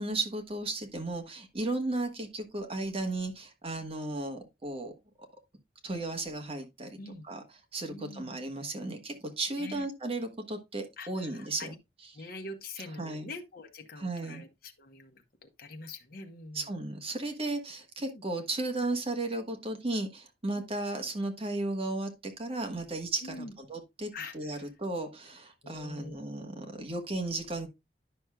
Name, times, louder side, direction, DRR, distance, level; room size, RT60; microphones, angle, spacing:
voice 1, 0.0-4.9 5.8-7.0 7.2-7.4 7.7-11.7 13.0-13.3 14.0-14.4 16.5-27.7, right 2 dB, 35° right, 1.3 m, -35 dB
voice 2, 7.0-7.3 7.9-8.4 9.6-9.8 11.0-11.8 12.1-16.7 18.1-18.2 20.5-20.7 23.2-23.5 24.1-24.7 25.6-26.4, left 2 dB, 55° left, 1.0 m, -45 dB
10.0 x 6.1 x 2.3 m
head